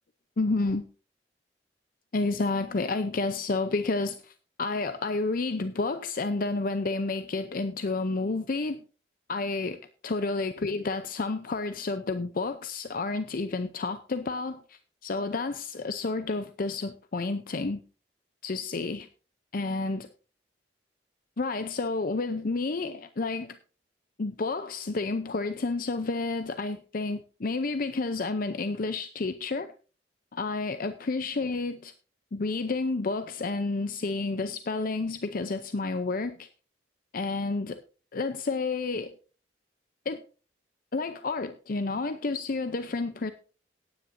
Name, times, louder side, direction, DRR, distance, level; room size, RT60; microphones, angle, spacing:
voice 1, 0.4-0.9 2.1-8.8 9.3-17.8 18.4-19.1 19.5-20.1 21.4-23.6 24.2-29.7 30.3-31.9 32.3-36.5 37.1-37.8 38.1-39.1 40.1-40.2 40.9-43.3, left 3 dB, 50° left, 0.6 m, -30 dB
17.5 x 9.7 x 2.6 m
head